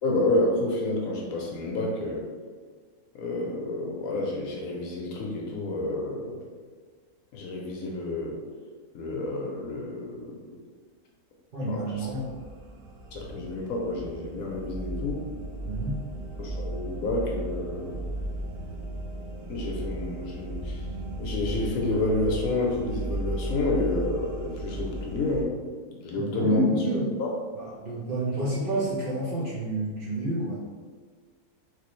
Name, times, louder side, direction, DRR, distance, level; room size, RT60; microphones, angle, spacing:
voice 1, 0.0-2.3 3.1-6.4 7.3-8.4 8.9-10.4 11.7-12.1 13.1-15.3 16.4-18.0 19.5-20.8 21.2-25.6 25.9-26.7 27.2-27.3 28.3-28.5, left 2 dB, 70° left, -1 dB, 1.0 m, -29 dB
voice 2, 11.5-12.4 15.6-16.0 26.1-27.1 27.5-30.7, right 1 dB, 40° right, -8 dB, 0.9 m, -29 dB
sound 1, 11.9-25.4, right 1 dB, 80° right, 0.5 m, -35 dB
3.3 x 3.1 x 3.0 m, 1.5 s
omnidirectional pair, 1.6 m